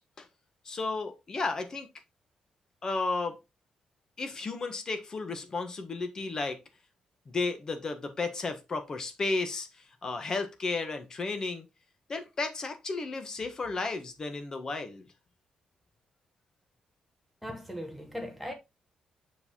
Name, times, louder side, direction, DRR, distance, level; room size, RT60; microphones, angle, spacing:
voice 1, 0.6-1.9 2.8-3.4 4.2-6.6 7.3-9.7 10.0-11.7 12.1-15.1, left 3 dB, 30° left, 1.1 m, -33 dB
voice 2, 17.4-18.5, equal, ahead, 1.3 m, -38 dB
6.4 x 4.9 x 3.6 m
wide cardioid pair, 170°, 2 cm